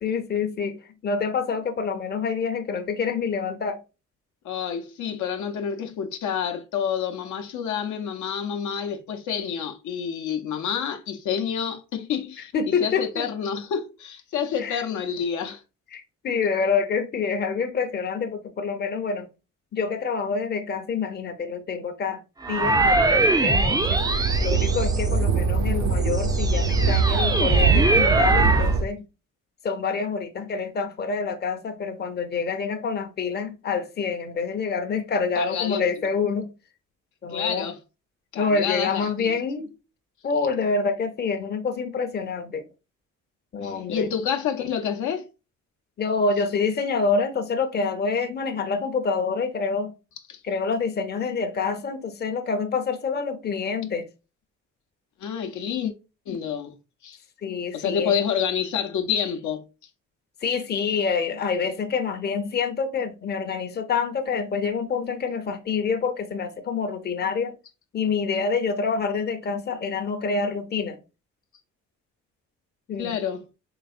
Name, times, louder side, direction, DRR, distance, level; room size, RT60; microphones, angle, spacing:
voice 1, 0.0-3.8 12.5-13.3 14.6-14.8 15.9-19.3 19.7-22.2 22.5-24.0 24.4-29.0 29.6-36.5 37.2-37.7 38.4-39.7 40.2-42.6 43.5-44.1 46.0-49.9 50.4-54.0 57.4-58.2 60.4-67.5 67.9-71.0 72.9-73.2, left 5 dB, 35° left, 0.6 m, -27 dB
voice 2, 4.4-12.5 12.8-15.6 35.4-35.8 37.3-37.8 38.3-39.4 43.6-45.3 50.3-50.4 55.2-55.9 56.3-56.7 57.0-57.2 57.7-59.6 73.0-73.4, left 7 dB, 75° left, 0.7 m, -28 dB
sound 1, 22.4-25.3 25.9-28.8, right 2 dB, 15° right, 0.4 m, -22 dB
sound 2, 23.8-28.8, right 4 dB, 70° right, 0.7 m, -22 dB
4.0 x 3.3 x 2.4 m
cardioid pair, 90°, 30 cm